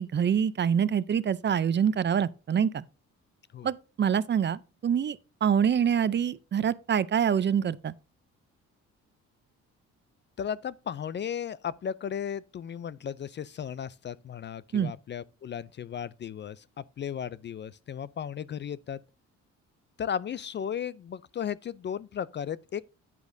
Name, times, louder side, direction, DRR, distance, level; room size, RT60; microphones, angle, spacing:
voice 1, 0.0-2.8 3.6-7.9 14.7-14.9, right 8 dB, 35° right, 0.5 m, -26 dB
voice 2, 10.4-19.0 20.0-22.8, left 8 dB, 40° left, 0.4 m, -35 dB
10.0 x 8.4 x 2.6 m
cardioid pair, 90°, 30 cm